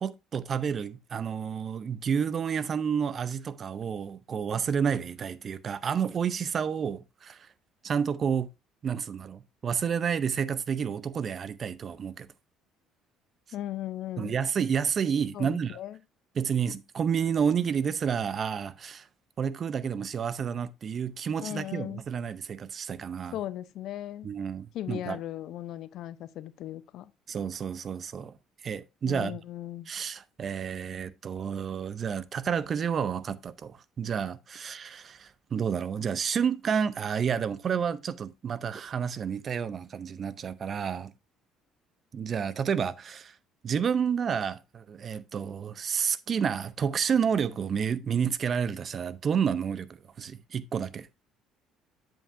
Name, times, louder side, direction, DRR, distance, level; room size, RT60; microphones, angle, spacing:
voice 1, 0.0-7.5 7.8-8.5 8.8-12.3 14.2-15.8 16.3-19.1 19.4-23.4 24.2-25.2 27.3-28.3 28.6-29.4 29.9-41.1 42.1-43.4 43.6-49.9 50.2-51.1, right 7 dB, 45° right, 0.6 m, -30 dB
voice 2, 13.5-14.4 15.3-16.0 21.4-22.0 23.3-24.3 24.7-27.1 29.0-29.9, left 13 dB, 65° left, 0.5 m, -37 dB
7.8 x 7.5 x 2.6 m
supercardioid pair, 70°, 0 cm